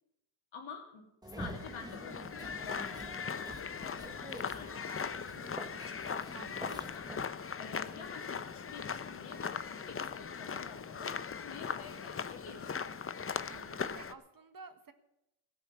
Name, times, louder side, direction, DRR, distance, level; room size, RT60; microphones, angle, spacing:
voice 1, 0.5-1.1 1.3-6.0 6.6-7.1 7.6-12.8, left 5 dB, 75° left, 3 dB, 3.0 m, -49 dB
sound 1, 1.2-7.2, right 1 dB, 10° right, 1.2 m, -47 dB
sound 2, 1.4-14.1, left 6 dB, 30° left, 0.7 m, -39 dB
voice 2, 6.3-6.9 13.5-14.9, right 5 dB, 45° right, 9 dB, 1.5 m, -52 dB
15.5 x 7.1 x 8.7 m, 0.86 s
cardioid pair, 80°, 48 cm